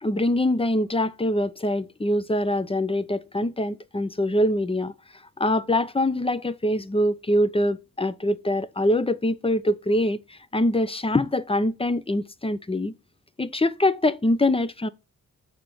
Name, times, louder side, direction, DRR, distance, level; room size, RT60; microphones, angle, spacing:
voice 1, 0.0-4.9 5.4-12.9 13.4-14.9, left 1 dB, 15° left, 0.7 m, -24 dB
6.8 x 5.2 x 6.1 m
cardioid pair, 70°, 33 cm